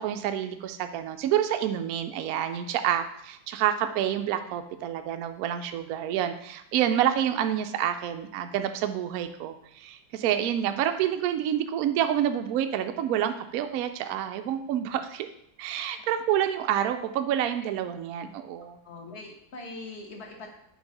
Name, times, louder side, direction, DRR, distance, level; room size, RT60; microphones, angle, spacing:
voice 1, 0.0-15.3 15.6-18.8, right 10 dB, 85° right, 8 dB, 0.8 m, -28 dB
voice 2, 18.8-20.6, left 2 dB, 40° left, 0 dB, 1.1 m, -42 dB
6.2 x 3.2 x 5.3 m, 0.73 s
omnidirectional pair, 2.1 m